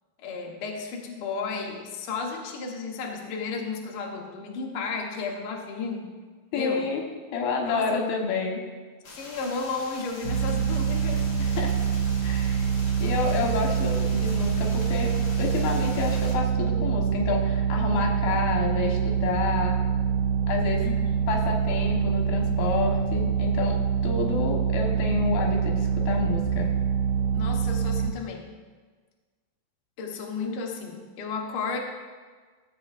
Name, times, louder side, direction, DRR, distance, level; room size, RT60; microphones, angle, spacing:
voice 1, 0.2-6.1 6.5-6.9 7.6-8.1 9.1-11.3 13.3-13.5 14.1-14.2 20.8-21.2 27.3-28.5 30.0-31.8, left 4 dB, 65° left, 0 dB, 1.4 m, -33 dB
voice 2, 6.5-7.0 7.3-8.6 11.4-11.7 12.2-12.7 13.0-15.1 15.4-19.8 20.5-20.9 21.3-26.7, left 4 dB, 85° left, 0 dB, 3.1 m, -29 dB
sound 1, 9.0-16.3, left 1 dB, 45° left, 1.4 m, -44 dB
sound 2, 10.2-28.1, right 7 dB, 80° right, 1.4 m, -25 dB
15.5 x 7.8 x 2.5 m, 1.4 s
omnidirectional pair, 4.1 m